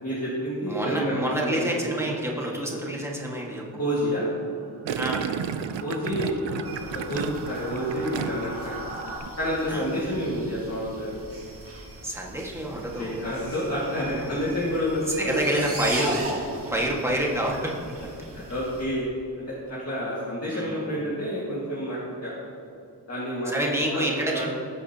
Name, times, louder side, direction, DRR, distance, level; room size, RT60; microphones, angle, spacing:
voice 1, 0.0-1.8 3.8-4.2 5.8-6.6 6.9-8.7 9.4-11.1 13.0-15.4 18.3-19.1 19.5-22.4 23.1-24.5, equal, 35° left, -7 dB, 1.9 m, -29 dB
voice 2, 0.7-3.7 4.9-5.3 9.7-9.8 12.0-13.2 14.0-14.4 15.1-16.4 16.7-18.0 20.5-20.8 23.4-24.5, right 1 dB, 5° right, -2 dB, 1.6 m, -28 dB
sound 1, 2.7-9.2, right 2 dB, 50° right, 2.9 m, -44 dB
Gurgling, 4.9-8.6 8.9-9.3, right 8 dB, 85° right, 0.6 m, -32 dB
sound 2, 6.6-18.8, right 1 dB, 30° right, 1.8 m, -39 dB
19.0 x 8.7 x 2.9 m, 2.6 s
wide cardioid pair, 175°, 43 cm